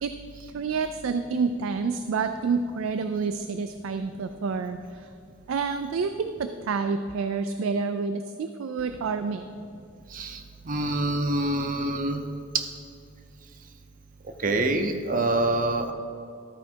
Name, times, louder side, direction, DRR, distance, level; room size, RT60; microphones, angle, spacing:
voice 1, 0.5-5.1 5.5-9.5, right 5 dB, 75° right, 9 dB, 0.4 m, -28 dB
voice 2, 10.7-12.2 12.5-12.6 14.4-15.9, right 2 dB, 40° right, 6 dB, 0.7 m, -25 dB
13.0 x 4.7 x 4.4 m, 2.6 s
head